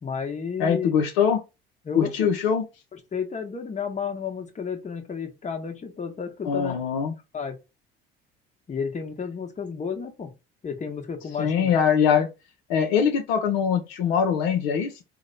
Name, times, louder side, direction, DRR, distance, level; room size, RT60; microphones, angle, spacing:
voice 1, 0.0-0.9 1.8-2.1 3.1-6.8 7.3-7.6 8.7-10.3 10.6-11.7, left 6 dB, 25° left, 0.9 m, -32 dB
voice 2, 0.6-1.4 1.9-2.6 6.4-7.1 11.4-12.3 12.7-14.9, left 7 dB, 65° left, 0.6 m, -22 dB
2.8 x 2.2 x 3.9 m
figure-of-eight pair, 60°, 30 cm